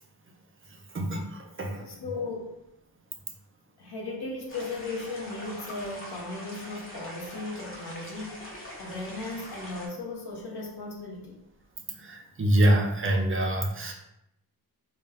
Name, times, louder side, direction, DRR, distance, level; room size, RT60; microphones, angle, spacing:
voice 1, 0.9-1.9 12.0-13.9, right 1 dB, 35° right, 2 dB, 0.4 m, -25 dB
voice 2, 1.9-2.6 3.8-11.4, left 3 dB, 85° left, -1 dB, 0.7 m, -36 dB
sound 1, 4.5-9.9, equal, 35° left, 0.8 m, -43 dB
2.2 x 2.2 x 3.4 m, 0.85 s
wide cardioid pair, 75°, 38 cm